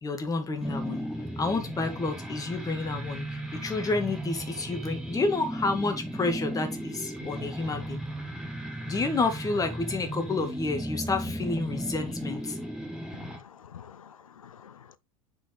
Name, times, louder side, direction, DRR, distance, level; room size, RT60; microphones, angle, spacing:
voice 1, 0.0-1.1 1.4-8.0 8.9-12.6, left 3 dB, 20° left, 2.1 m, -30 dB
sound 1, 0.6-13.4, right 1 dB, 5° right, 2.1 m, -36 dB
voice 2, 13.1-15.0, left 8 dB, 75° left, 0.6 m, -49 dB
6.7 x 5.3 x 4.1 m
figure-of-eight pair, 75°, 18 cm